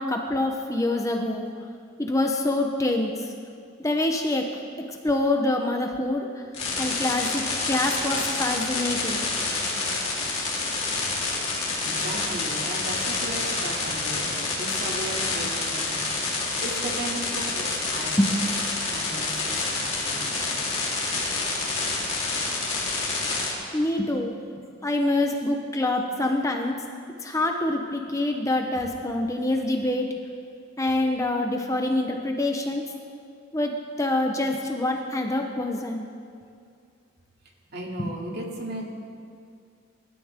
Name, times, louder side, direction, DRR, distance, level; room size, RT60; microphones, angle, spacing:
voice 1, 0.0-1.5 2.0-3.3 3.8-4.5 4.9-6.4 6.8-9.3 18.2-18.3 23.7-24.3 24.8-26.8 27.2-30.1 30.8-32.8 33.5-36.1 38.0-38.1, left 1 dB, 15° left, 3 dB, 0.9 m, -26 dB
sound 1, 6.5-23.5, left 3 dB, 35° left, 3.6 m, -28 dB
voice 2, 11.6-16.1 16.6-17.6 17.9-18.1 18.9-20.8 37.7-38.9, right 1 dB, 55° right, -2 dB, 2.7 m, -36 dB
25.5 x 13.0 x 3.7 m, 2.3 s
head